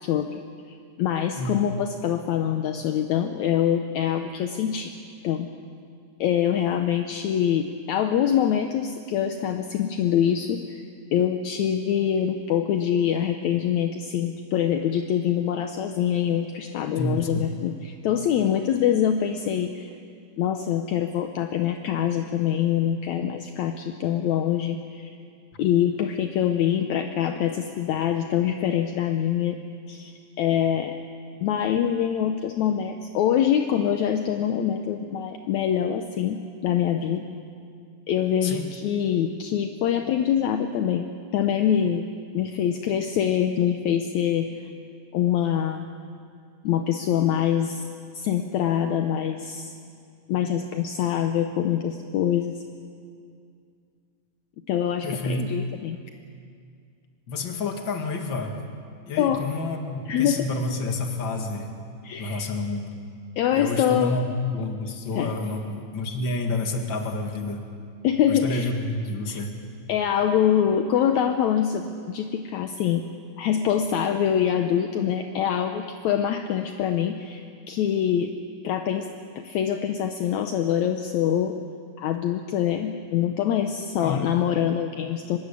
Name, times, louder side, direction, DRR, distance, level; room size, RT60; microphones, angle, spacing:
voice 1, 0.0-0.4 0.7-4.9 5.2-5.5 6.2-10.8 11.1-19.9 20.4-25.1 25.6-29.6 29.9-30.9 31.4-37.3 38.1-41.1 41.3-42.1 42.3-44.5 45.1-45.9 46.6-47.8 48.1-49.7 50.3-52.6 54.7-56.0 59.2-59.4 60.1-60.5 62.0-62.4 63.4-64.1 65.2-65.3 68.0-68.7 69.3-69.4 69.9-73.1 73.4-78.3 78.6-79.1 79.4-81.6 82.0-85.4, left 9 dB, 70° left, 6 dB, 2.1 m, -24 dB
voice 2, 17.0-17.5 38.4-38.7 55.0-55.5 57.3-58.6 59.1-61.7 62.2-62.9 63.5-67.7 68.3-69.5 84.0-84.2, left 2 dB, 40° left, 4 dB, 2.5 m, -29 dB
24.0 x 21.5 x 8.5 m, 2.3 s
omnidirectional pair, 3.6 m